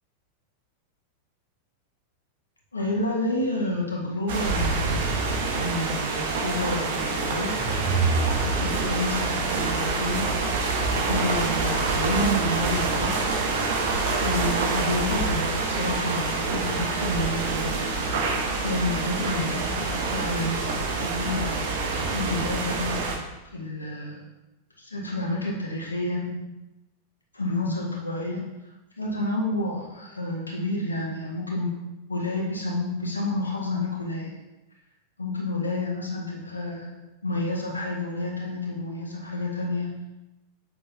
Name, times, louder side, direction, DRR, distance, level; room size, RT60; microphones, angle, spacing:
voice 1, 2.7-4.9 5.5-7.5 8.4-10.4 11.1-13.2 14.1-18.0 18.6-20.6 21.0-21.7 22.1-23.1 23.5-24.2 24.8-26.5 27.3-28.5 29.0-34.3 35.2-40.0, left 1 dB, 80° left, -2 dB, 1.7 m, -29 dB
sound 1, 4.3-23.2, right 3 dB, 55° right, 1.2 m, -26 dB
sound 2, 7.5-9.4, right 4 dB, 10° right, 1.9 m, -27 dB
8.3 x 6.4 x 2.8 m, 1.0 s
figure-of-eight pair, 90°, 0 cm